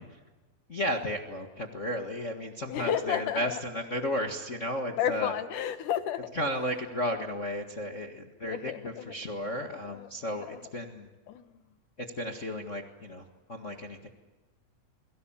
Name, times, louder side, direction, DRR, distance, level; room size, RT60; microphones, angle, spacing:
voice 1, 0.7-5.3 6.3-11.1 12.0-14.1, equal, 45° left, 3 dB, 0.9 m, -34 dB
voice 2, 2.7-3.6 5.0-6.2 8.5-9.1 9.7-10.1 10.5-10.6 11.3-11.6, left 9 dB, 70° left, 10 dB, 2.5 m, -32 dB
29.5 x 22.5 x 7.4 m, 1.2 s
omnidirectional pair, 4.2 m